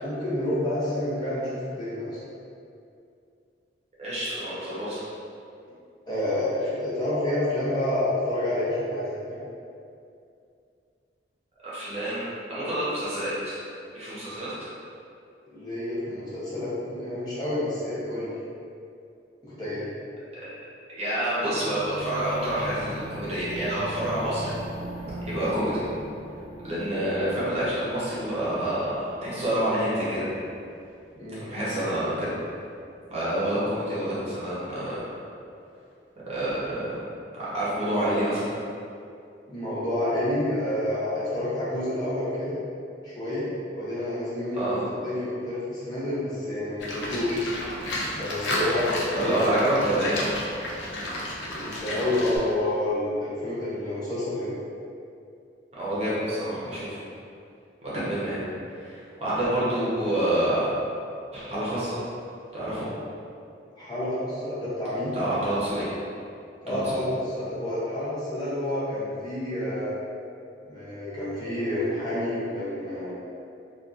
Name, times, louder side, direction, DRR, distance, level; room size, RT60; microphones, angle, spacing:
voice 1, 0.0-2.2 6.1-9.4 15.5-18.3 19.4-19.9 31.1-31.5 39.5-42.6 43.0-43.5 43.7-47.4 48.2-48.9 49.2-49.6 51.5-54.5 63.8-65.2 66.6-69.9 70.7-73.1, left 1 dB, 25° left, -10 dB, 0.6 m, -29 dB
voice 2, 4.0-5.0 11.6-13.6 13.9-14.7 20.4-20.5 20.9-24.5 25.3-25.8 26.6-30.3 31.4-32.3 33.1-35.0 36.3-36.9 37.3-38.5 44.5-44.8 49.1-50.2 55.7-57.0 57.8-58.4 58.7-60.7 61.3-62.0 62.5-62.9 65.1-65.9 66.7-67.0, right 1 dB, 40° right, -9 dB, 0.7 m, -28 dB
sound 1, 21.6-31.6, equal, 55° left, 1.2 m, -39 dB
Livestock farm animals working animals, 46.8-52.4, left 1 dB, 90° left, 0.5 m, -32 dB
2.6 x 2.3 x 2.4 m, 2.5 s
head